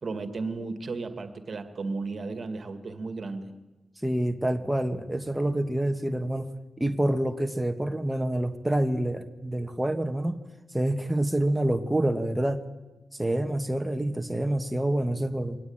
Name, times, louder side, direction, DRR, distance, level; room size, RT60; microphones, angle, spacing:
voice 1, 0.0-3.5, right 3 dB, 55° right, 9 dB, 2.2 m, -34 dB
voice 2, 4.0-6.5 6.8-10.4 10.7-12.6 13.1-15.6, right 1 dB, 10° right, 6 dB, 1.6 m, -27 dB
23.5 x 18.5 x 8.9 m, 1.1 s
cardioid pair, 70°, 0 cm